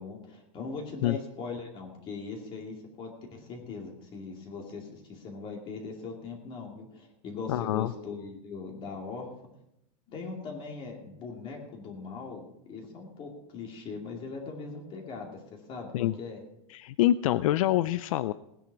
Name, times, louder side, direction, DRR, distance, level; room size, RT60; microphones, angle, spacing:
voice 1, 0.0-9.3 10.1-12.4 12.7-16.4, left 4 dB, 30° left, 0 dB, 2.4 m, -40 dB
voice 2, 7.5-7.9 15.9-16.1 16.7-18.3, left 13 dB, 80° left, 14 dB, 0.5 m, -26 dB
17.5 x 10.0 x 4.7 m, 0.81 s
supercardioid pair, 155°, 17 cm